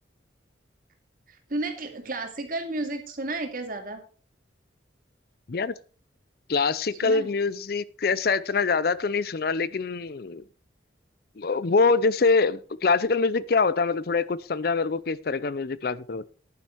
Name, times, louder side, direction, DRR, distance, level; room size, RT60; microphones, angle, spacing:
voice 1, 1.3-4.0 6.9-7.3, right 2 dB, 45° right, 5 dB, 2.3 m, -32 dB
voice 2, 6.5-10.4 11.4-16.3, left 4 dB, 50° left, 18 dB, 0.5 m, -24 dB
11.0 x 9.6 x 4.5 m, 0.40 s
head